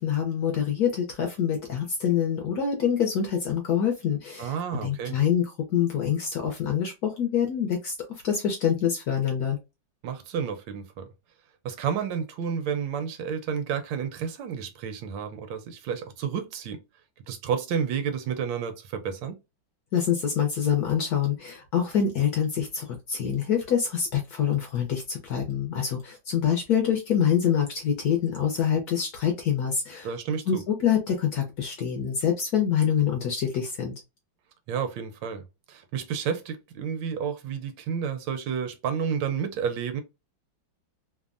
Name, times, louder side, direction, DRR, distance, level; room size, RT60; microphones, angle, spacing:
voice 1, 0.0-7.9 8.2-9.6 19.9-30.1 30.5-33.9, left 8 dB, 65° left, 1.0 m, -26 dB
voice 2, 4.4-5.2 10.0-11.1 11.6-16.8 17.3-19.4 30.0-30.6 34.7-40.0, right 7 dB, 75° right, 1.2 m, -31 dB
3.4 x 2.1 x 2.4 m
omnidirectional pair, 2.2 m